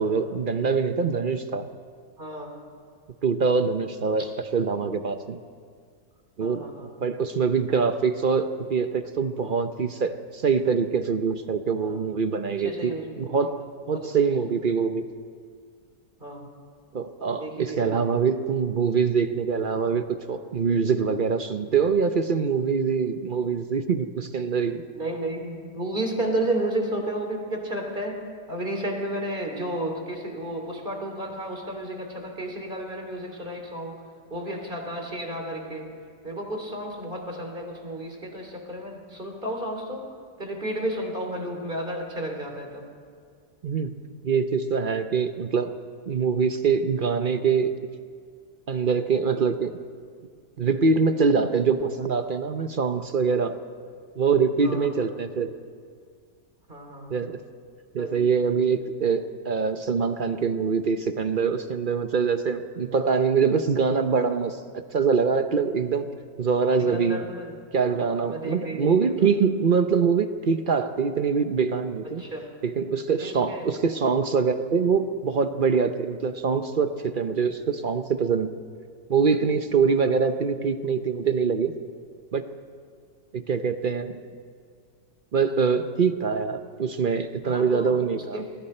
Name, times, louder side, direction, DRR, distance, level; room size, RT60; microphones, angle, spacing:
voice 1, 0.0-1.6 3.2-5.4 6.4-6.6 7.0-13.6 13.9-15.0 16.9-24.8 43.6-43.9 44.2-45.7 46.1-47.7 48.7-49.7 50.6-53.6 54.2-55.6 57.1-57.4 57.9-64.6 64.9-66.1 66.4-67.3 67.7-72.2 72.6-78.5 79.1-81.7 82.3-82.5 83.3-84.2 85.3-88.4, right 5 dB, 55° right, 9 dB, 0.5 m, -24 dB
voice 2, 2.2-2.5 6.4-6.9 11.8-12.0 12.6-13.3 13.9-14.1 16.2-16.5 17.4-18.0 24.9-28.2 28.5-34.0 34.3-35.9 36.2-40.1 40.4-42.9 54.6-54.9 56.7-57.1 58.0-58.2 66.9-67.5 67.8-69.3 72.2-72.5 73.2-73.7 87.4-88.4, right 1 dB, 30° right, 3 dB, 3.0 m, -32 dB
28.5 x 21.0 x 4.3 m, 2.1 s
omnidirectional pair, 1.9 m